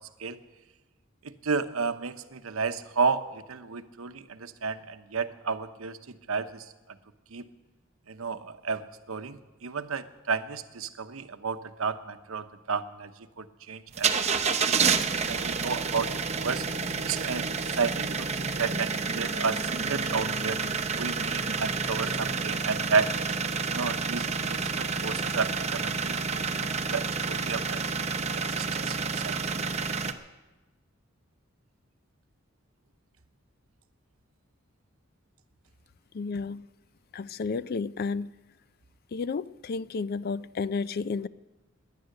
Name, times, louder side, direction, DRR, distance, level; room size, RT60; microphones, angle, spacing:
voice 1, 1.2-6.7 7.3-7.5 8.1-13.1 13.4-16.6 17.0-20.6 21.0-23.1 23.7-26.4 26.9-27.8 28.3-29.4, right 5 dB, 90° right, 0.8 m, -32 dB
sound 1, 13.9-30.1, right 5 dB, 30° right, 0.8 m, -29 dB
voice 2, 36.1-36.6 37.1-38.3 39.1-41.3, left 4 dB, 50° left, 0.4 m, -32 dB
18.5 x 10.5 x 6.6 m
head